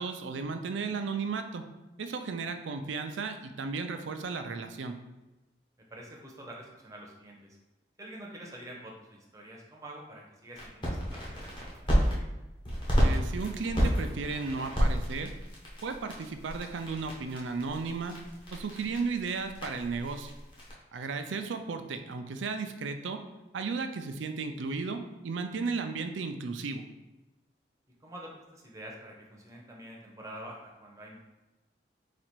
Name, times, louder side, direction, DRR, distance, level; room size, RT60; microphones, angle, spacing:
voice 1, 0.0-1.6 2.0-5.0 13.0-15.3 15.8-18.1 18.5-20.3 20.9-23.2 23.5-26.8, right 4 dB, 85° right, 7 dB, 0.4 m, -34 dB
voice 2, 5.9-7.6 8.0-11.9 21.2-21.3 28.0-31.2, right 1 dB, 15° right, -2 dB, 0.7 m, -47 dB
sound 1, 10.6-12.2 12.6-20.7, equal, 25° left, 1.0 m, -31 dB
4.1 x 2.5 x 4.5 m, 1.0 s
head